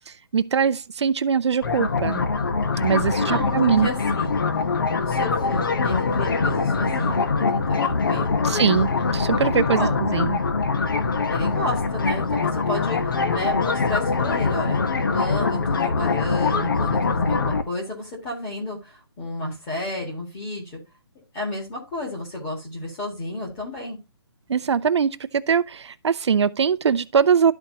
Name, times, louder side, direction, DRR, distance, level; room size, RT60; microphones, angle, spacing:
voice 1, 0.3-2.2 2.8-3.9 8.4-10.4 24.5-27.5, right 6 dB, 85° right, 0.5 m, -22 dB
sound 1, 1.6-17.6, left 4 dB, 50° left, 1.0 m, -23 dB
voice 2, 3.1-4.3 5.0-8.5 9.4-10.0 11.3-14.8 15.1-20.8 21.3-24.0, left 1 dB, 15° left, 1.9 m, -31 dB
12.5 x 4.4 x 2.8 m
hypercardioid pair, 180°, 14 cm